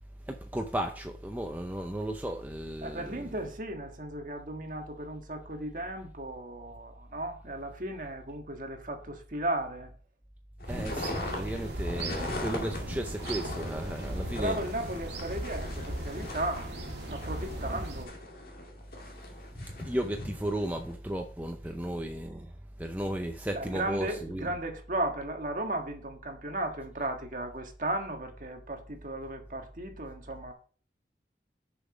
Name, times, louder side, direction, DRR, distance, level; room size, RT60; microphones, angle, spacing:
voice 1, 0.3-3.2 10.7-14.6 19.8-22.5 22.8-24.1 24.3-24.5, right 1 dB, 10° right, 0.5 m, -34 dB
voice 2, 2.8-9.9 14.3-16.7 17.1-18.1 21.8-22.0 23.5-30.5, right 1 dB, 45° right, 1.5 m, -35 dB
sound 1, 10.6-20.9, left 1 dB, 55° left, 2.1 m, -40 dB
sound 2, 10.7-18.1, right 1 dB, 80° right, 1.9 m, -38 dB
6.8 x 5.8 x 5.1 m
head